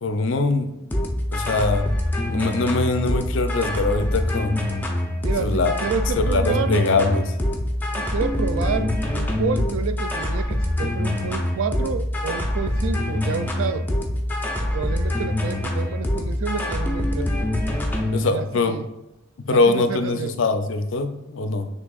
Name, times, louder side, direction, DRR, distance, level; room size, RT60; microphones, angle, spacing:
voice 1, 0.0-0.7 1.3-1.9 2.3-4.6 5.4-5.7 6.3-7.3 18.1-18.8 19.5-21.7, left 3 dB, 65° left, 0.5 m, -22 dB
sound 1, 0.9-18.2, left 1 dB, 10° left, 0.5 m, -25 dB
voice 2, 5.2-6.9 8.0-13.9 14.6-17.5 18.3-18.9 19.5-20.4, right 6 dB, 70° right, 0.3 m, -29 dB
6.0 x 3.2 x 2.4 m
head